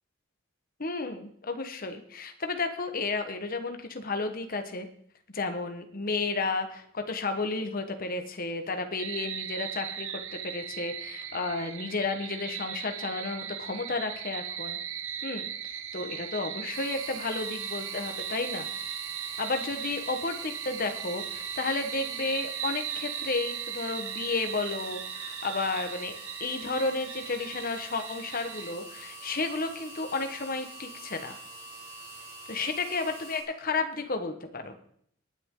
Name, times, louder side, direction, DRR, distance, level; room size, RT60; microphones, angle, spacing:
voice 1, 0.8-4.9 5.3-14.8 15.2-18.7 19.4-31.4 32.5-34.8, left 3 dB, 45° left, 6 dB, 1.3 m, -32 dB
sound 1, 9.0-28.7, right 9 dB, 70° right, 1.2 m, -38 dB
sound 2, 16.7-33.4, right 2 dB, 35° right, 4.6 m, -45 dB
19.5 x 9.5 x 3.8 m, 0.65 s
head